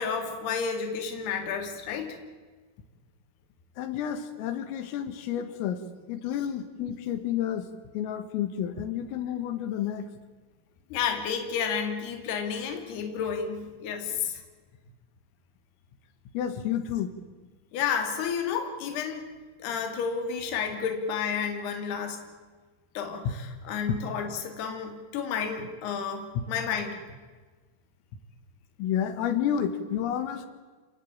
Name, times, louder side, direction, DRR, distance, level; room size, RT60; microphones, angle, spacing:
voice 1, 0.0-2.2 10.9-14.4 17.7-19.3 19.6-22.3 22.9-27.0, left 6 dB, 55° left, 5 dB, 4.4 m, -31 dB
voice 2, 3.8-5.8 6.1-7.7 7.9-10.1 16.3-17.1 28.8-30.5, left 9 dB, 90° left, 10 dB, 4.5 m, -30 dB
28.0 x 19.5 x 8.8 m, 1.4 s
omnidirectional pair, 5.8 m